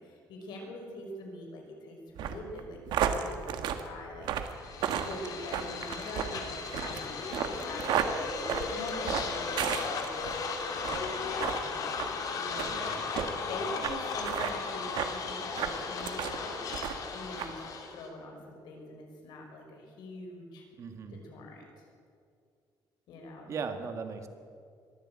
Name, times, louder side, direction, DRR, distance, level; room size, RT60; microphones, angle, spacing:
voice 1, 0.0-4.3 4.9-8.3 8.7-10.3 10.7-13.0 13.5-16.5 16.9-17.6 17.9-20.6 21.1-21.8 23.1-23.5, left 2 dB, 75° left, 2 dB, 5.5 m, -44 dB
sound 1, 2.2-10.4 10.8-11.1 11.4-11.6 12.0-12.1 12.6-12.7 13.2-13.3 13.8-13.9 14.2-14.5 15.0-15.1 15.6-16.4 16.7-17.1 17.4-17.5, right 9 dB, 75° right, 1.6 m, -33 dB
sound 2, 4.5-18.1, left 4 dB, 50° left, 2.6 m, -36 dB
voice 2, 12.7-13.4 20.8-21.2 23.5-24.3, right 5 dB, 40° right, 7 dB, 1.6 m, -39 dB
22.0 x 14.0 x 8.8 m, 2.3 s
cardioid pair, 175°, 8 cm